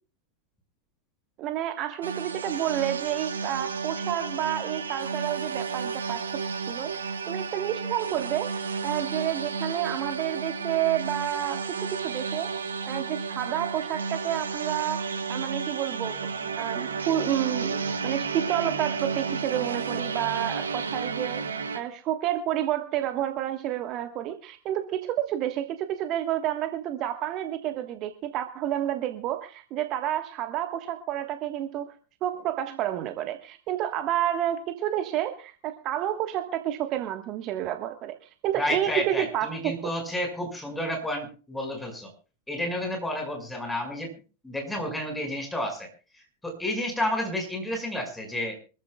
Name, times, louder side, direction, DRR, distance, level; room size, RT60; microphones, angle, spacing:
voice 1, 1.4-8.5 8.8-12.5 12.9-16.3 16.6-21.4 21.7-31.9 32.2-39.9, right 12 dB, 35° right, 8 dB, 1.4 m, -30 dB
sound 1, 2.0-21.8, right 5 dB, 70° right, 1.5 m, -32 dB
voice 2, 38.6-42.1 42.5-44.1 44.4-45.9 46.1-48.6, left 1 dB, 5° left, 3 dB, 5.8 m, -31 dB
25.5 x 14.5 x 2.3 m, 0.36 s
figure-of-eight pair, 90°, 0 cm